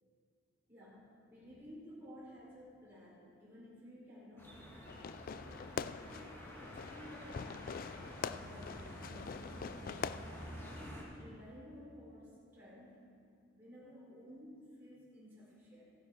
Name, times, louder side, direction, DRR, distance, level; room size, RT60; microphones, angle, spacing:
voice 1, 0.7-5.8 6.1-10.3 10.7-13.0 13.5-15.9, equal, 10° right, -9 dB, 3.8 m, -55 dB
sound 1, 4.4-11.0, equal, 10° left, 1.9 m, -50 dB
Fireworks, 4.9-10.9, left 6 dB, 45° left, 0.3 m, -44 dB
14.5 x 10.5 x 4.7 m, 2.4 s
head